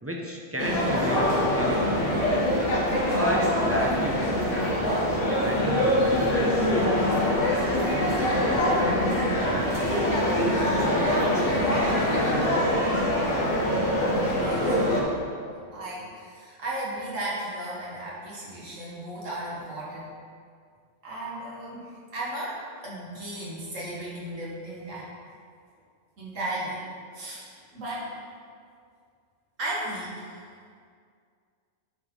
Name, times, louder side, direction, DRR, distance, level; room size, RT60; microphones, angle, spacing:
voice 1, 0.0-2.1 2.9-7.0 7.5-11.4 12.1-12.4, equal, 15° right, -1 dB, 0.7 m, -34 dB
sound 1, 0.6-15.0, left 1 dB, 75° left, 1.8 m, -24 dB
voice 2, 14.3-14.6 15.7-20.1 21.0-22.5 22.8-25.1 26.2-26.8 27.1-27.4 27.7-28.1 29.6-30.2, right 1 dB, 85° right, -6 dB, 2.3 m, -35 dB
8.6 x 4.7 x 5.7 m, 2.2 s
omnidirectional pair, 1.3 m